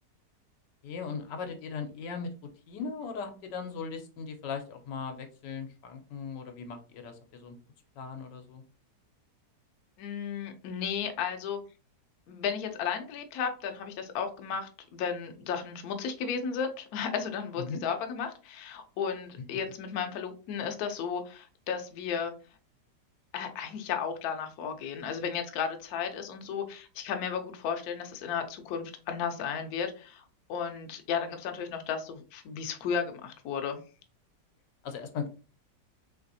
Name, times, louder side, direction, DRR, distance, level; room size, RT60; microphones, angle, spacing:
voice 1, 0.8-2.3 2.7-7.6 8.0-8.6 17.6-17.8 34.8-35.3, left 5 dB, 85° left, 5 dB, 1.3 m, -38 dB
voice 2, 10.0-11.6 12.3-22.3 23.3-30.2 30.5-33.8, left 7 dB, 70° left, 5 dB, 1.0 m, -34 dB
3.4 x 3.2 x 2.6 m, 0.35 s
omnidirectional pair, 1.9 m